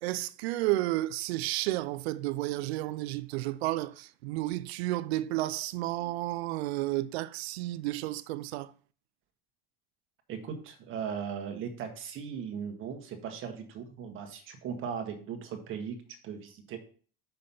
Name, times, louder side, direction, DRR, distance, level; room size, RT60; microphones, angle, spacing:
voice 1, 0.0-8.7, right 17 dB, 90° right, 0.5 m, -32 dB
voice 2, 10.3-16.0 16.2-16.8, right 7 dB, 40° right, 1.5 m, -38 dB
5.8 x 5.3 x 5.5 m
supercardioid pair, 135°, 31 cm